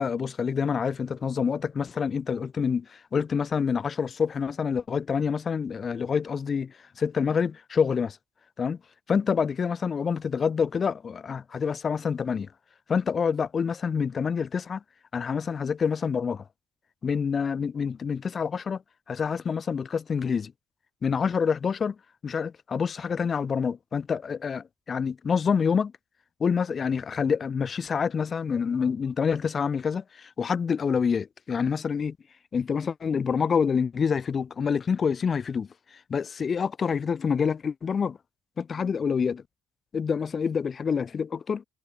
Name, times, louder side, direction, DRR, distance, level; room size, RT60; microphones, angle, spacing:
voice 1, 0.0-8.2 8.6-8.8 9.1-12.5 12.9-14.8 15.1-16.4 17.0-18.8 19.1-20.5 21.0-22.0 22.2-25.9 26.4-32.2 32.5-35.7 36.1-38.2 38.6-39.4 39.9-41.6, left 6 dB, 40° left, 0.5 m, -27 dB
hypercardioid pair, 60°, 0 cm